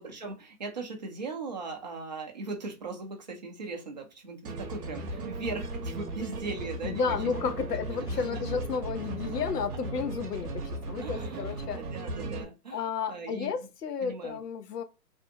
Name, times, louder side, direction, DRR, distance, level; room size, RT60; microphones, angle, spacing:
voice 1, 0.0-7.2 8.0-8.4 11.0-13.6 14.0-14.4, right 3 dB, 30° right, 0.5 m, -39 dB
sound 1, 4.4-12.4, right 2 dB, 70° right, 0.8 m, -36 dB
voice 2, 6.8-11.8 12.7-14.8, left 6 dB, 85° left, 0.6 m, -32 dB
2.6 x 2.1 x 2.6 m
hypercardioid pair, 140°, 46 cm